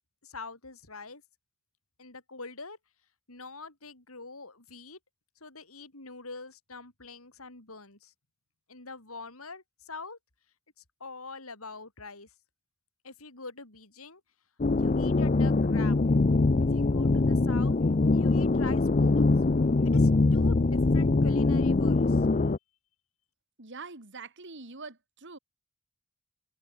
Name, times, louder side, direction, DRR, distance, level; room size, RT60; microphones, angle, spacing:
voice 1, 0.2-1.2 2.0-2.8 3.3-5.0 5.4-8.1 8.7-10.2 11.0-12.3 13.0-14.2 14.8-16.0 16.7-17.8 18.1-19.3 19.8-22.3, left 3 dB, 75° left, 5.7 m, -44 dB
sound 1, 14.6-22.6, left 3 dB, 35° left, 0.6 m, -23 dB
voice 2, 23.6-25.4, right 4 dB, 55° right, 2.8 m, -44 dB
head